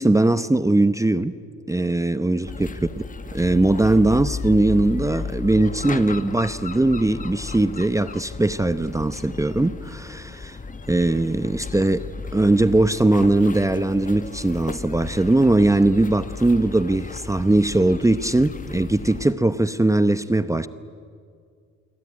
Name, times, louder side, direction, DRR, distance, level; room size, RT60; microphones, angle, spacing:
voice 1, 0.0-1.3 1.7-3.0 3.3-10.6 10.9-12.0 12.3-20.7, right 2 dB, 10° right, 12 dB, 0.9 m, -20 dB
sound 1, 2.4-19.3, left 4 dB, 25° left, 1.2 m, -35 dB
27.0 x 22.5 x 9.8 m, 2.2 s
cardioid pair, 90°, 30 cm